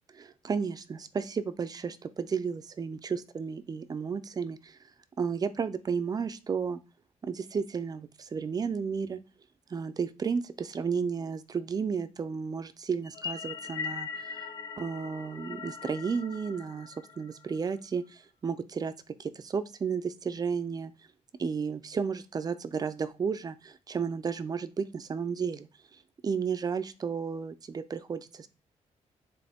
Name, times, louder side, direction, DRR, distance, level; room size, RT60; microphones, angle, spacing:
voice 1, 0.2-4.8 5.2-6.8 7.2-9.2 9.7-14.4 14.8-18.9 19.2-20.9 21.4-25.7 26.2-28.5, right 6 dB, 30° right, 0.5 m, -33 dB
sound 1, 13.0-17.6, left 6 dB, 30° left, 0.6 m, -40 dB
9.3 x 3.7 x 3.5 m
cardioid pair, 130°, 12 cm